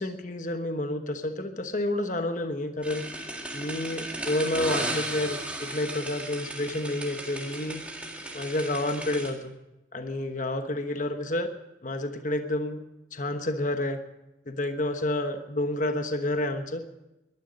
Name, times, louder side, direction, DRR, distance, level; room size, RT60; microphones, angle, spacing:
voice 1, 0.0-3.0 3.5-7.8 8.3-9.5 9.9-11.5 11.8-12.8 13.1-14.0 14.5-16.8, left 1 dB, 40° left, 7 dB, 1.2 m, -29 dB
sound 1, 2.8-9.3, right 1 dB, 5° right, 2.0 m, -35 dB
22.0 x 11.5 x 5.2 m, 0.94 s
head